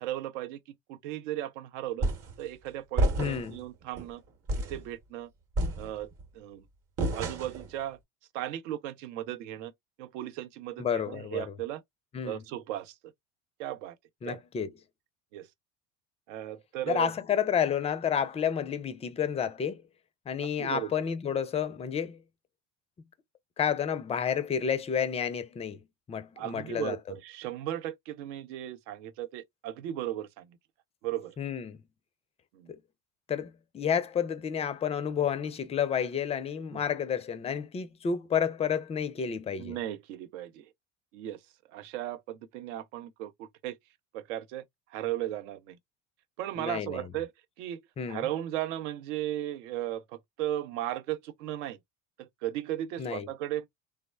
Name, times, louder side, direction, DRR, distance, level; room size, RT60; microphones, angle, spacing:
voice 1, 0.0-2.1 2.4-4.2 4.7-5.3 5.8-6.7 7.1-8.0 8.3-9.7 10.0-11.8 12.2-13.0 13.6-14.0 14.3-14.4 15.3-15.5 16.3-17.1 20.4-21.0 26.4-30.6 31.0-31.4 32.5-32.7 36.7-36.8 39.6-40.7 41.1-41.4 41.7-43.8 44.1-44.6 44.9-45.8 46.4-47.3 47.6-47.8 48.1-51.8 52.2-53.7, right 13 dB, 70° right, 0.6 m, -36 dB
sound 1, 2.0-2.4 3.0-3.6 4.0-4.1 4.5-4.8 5.6-6.2 7.0-7.7, right 1 dB, 35° right, 0.9 m, -29 dB
voice 2, 3.2-3.6 10.8-11.4 12.1-12.4 14.2-14.7 16.9-19.8 20.3-22.2 23.6-25.8 26.1-27.0 31.4-31.8 32.7-32.8 33.3-39.8 46.6-47.0 48.0-48.3 53.0-53.3, left 8 dB, 15° left, 0.4 m, -30 dB
3.3 x 2.0 x 2.2 m
hypercardioid pair, 70°, 38 cm